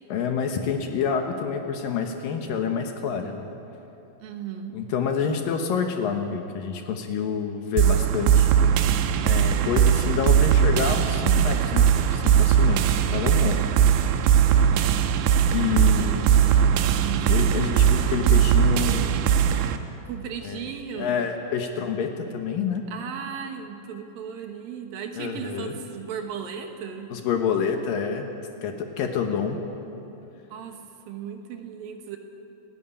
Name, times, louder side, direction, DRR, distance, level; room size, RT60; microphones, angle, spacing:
voice 1, 0.1-3.5 4.7-8.5 9.2-13.7 15.5-16.3 17.3-19.3 20.4-20.6 21.0-22.8 25.2-25.7 27.1-28.3 28.6-29.6, left 6 dB, 70° left, 4 dB, 2.2 m, -28 dB
voice 2, 4.2-4.7 14.5-15.1 15.7-17.8 20.1-21.3 22.9-27.1 30.5-30.8 31.1-32.2, right 7 dB, 65° right, 4 dB, 2.5 m, -37 dB
sound 1, 7.8-19.8, right 8 dB, 80° right, 3.1 m, -20 dB
30.0 x 11.0 x 8.8 m, 2.9 s
omnidirectional pair, 5.4 m